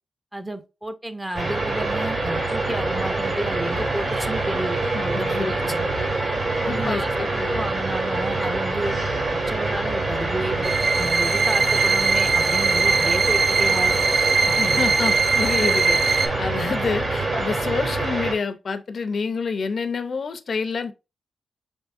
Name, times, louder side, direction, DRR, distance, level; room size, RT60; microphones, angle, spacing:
voice 1, 0.3-5.6 6.6-9.0 9.3-10.7 11.0-13.9 15.5-15.7, right 1 dB, 15° right, 0.5 m, -31 dB
sound 1, 1.3-18.3, right 2 dB, 55° right, 2.1 m, -25 dB
voice 2, 4.5-5.9 6.6-7.7 14.5-20.9, left 5 dB, 60° left, 0.5 m, -28 dB
sound 2, 10.6-16.3, right 4 dB, 75° right, 0.7 m, -21 dB
4.8 x 3.5 x 2.5 m
wide cardioid pair, 110°, 0 cm